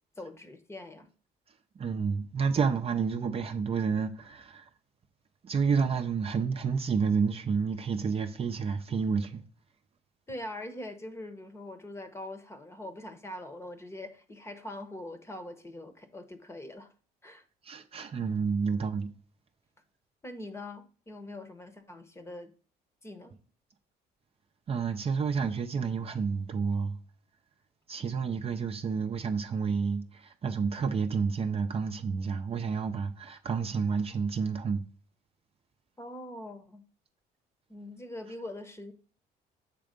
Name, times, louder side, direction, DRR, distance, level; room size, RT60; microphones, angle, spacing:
voice 1, 0.2-1.1 10.3-16.9 17.2-17.4 20.2-22.5 23.0-23.4 36.0-36.8 37.7-38.9, left 1 dB, 15° left, 0.9 m, -43 dB
voice 2, 1.8-4.7 5.4-9.4 17.6-19.1 24.7-27.0 27.9-34.8, right 5 dB, 35° right, 0.6 m, -30 dB
7.5 x 3.4 x 5.1 m
cardioid pair, 110°, 17 cm